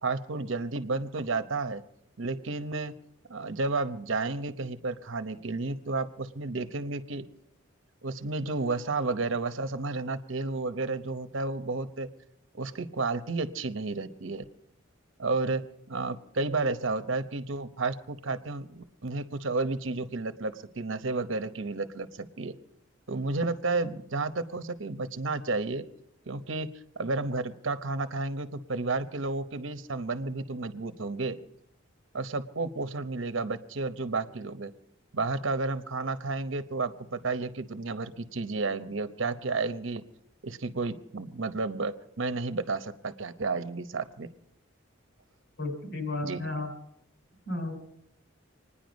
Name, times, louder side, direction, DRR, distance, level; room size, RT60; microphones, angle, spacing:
voice 1, 0.0-1.8 2.2-2.9 3.3-7.2 8.0-12.1 12.5-14.4 15.2-15.6 15.9-22.5 23.1-25.8 26.3-26.7 27.0-31.4 32.1-34.7 35.1-40.0 40.4-44.3 46.2-46.5, right 3 dB, 70° right, 10 dB, 0.9 m, -32 dB
voice 2, 45.6-46.7 47.5-47.7, left 2 dB, 55° left, 4 dB, 4.3 m, -33 dB
26.0 x 10.0 x 5.2 m, 0.78 s
head